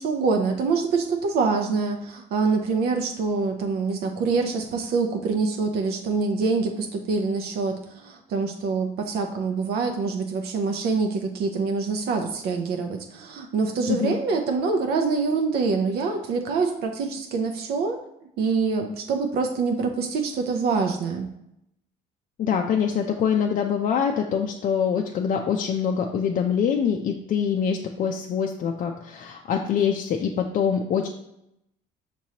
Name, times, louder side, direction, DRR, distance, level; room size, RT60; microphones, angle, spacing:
voice 1, 0.0-18.0 18.4-21.3, right 4 dB, 70° right, 3 dB, 0.6 m, -25 dB
voice 2, 22.4-31.1, left 7 dB, 50° left, 2 dB, 0.4 m, -24 dB
5.9 x 3.0 x 2.8 m, 0.80 s
cardioid pair, 110°, 17 cm